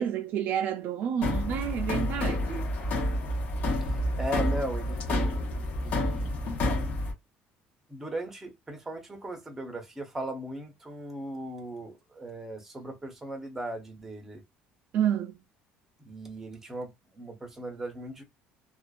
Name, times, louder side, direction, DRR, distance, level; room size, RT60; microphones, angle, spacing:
voice 1, 0.0-2.7 14.9-15.4, right 9 dB, 55° right, 0.3 m, -29 dB
sound 1, 1.2-7.1, left 1 dB, 50° left, 0.7 m, -29 dB
voice 2, 3.8-5.5 5.8-6.3 6.6-6.8 7.9-14.4 16.0-18.2, right 1 dB, 10° right, 0.6 m, -38 dB
2.4 x 2.2 x 2.3 m
cardioid pair, 160°, 4 cm